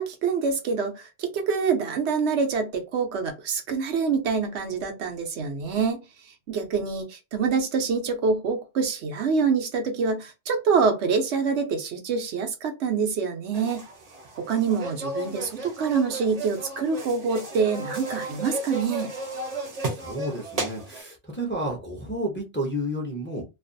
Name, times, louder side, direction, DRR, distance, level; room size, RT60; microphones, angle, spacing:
voice 1, 0.0-6.0 6.5-13.8 14.4-19.1, right 5 dB, 80° right, 1.0 m, -26 dB
sound 1, 13.5-21.0, right 2 dB, 40° right, 0.7 m, -34 dB
voice 2, 19.9-23.4, equal, 15° left, 0.5 m, -31 dB
2.5 x 2.3 x 2.5 m
omnidirectional pair, 1.1 m